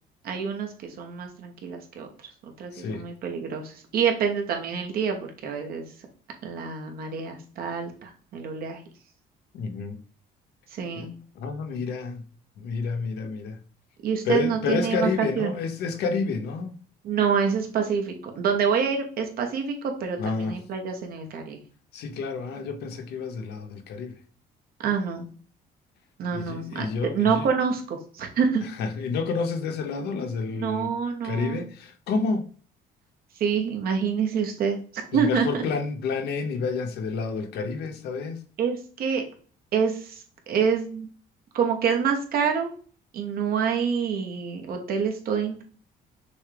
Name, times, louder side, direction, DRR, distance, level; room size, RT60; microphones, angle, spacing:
voice 1, 0.2-2.1 2.4-5.9 6.4-8.8 10.7-11.1 14.0-15.5 17.0-21.6 24.8-25.3 26.2-26.9 27.1-28.6 30.6-31.6 33.4-35.6 38.6-39.2 39.7-41.1 41.5-42.7 43.1-45.6, right 6 dB, 65° right, 1.1 m, -27 dB
voice 2, 2.7-3.0 9.5-10.0 10.9-11.1 11.3-12.3 12.6-13.6 14.2-16.8 20.2-20.6 21.9-24.2 26.3-27.5 28.6-30.9 31.2-32.5 35.1-38.4, left 4 dB, 75° left, 0.7 m, -29 dB
6.2 x 2.3 x 3.3 m
cardioid pair, 110°, 17 cm